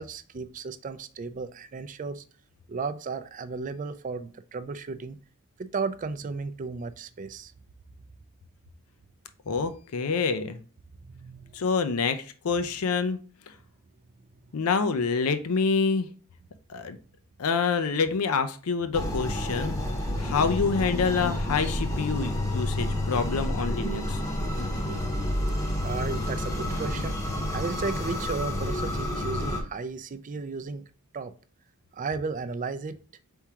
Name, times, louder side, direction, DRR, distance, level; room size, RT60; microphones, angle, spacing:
voice 1, 0.0-2.2 2.7-5.2 5.6-7.5 11.0-11.6 25.8-27.2 27.5-30.8 31.1-31.3 31.9-33.0, right 4 dB, 35° right, 0.4 m, -34 dB
voice 2, 9.5-10.6 11.5-13.2 14.5-16.1 16.7-17.0 17.4-19.7 20.2-24.2, left 5 dB, 75° left, 0.5 m, -27 dB
sound 1, 18.9-29.6, left 1 dB, 15° left, 0.8 m, -29 dB
4.6 x 3.6 x 2.9 m
head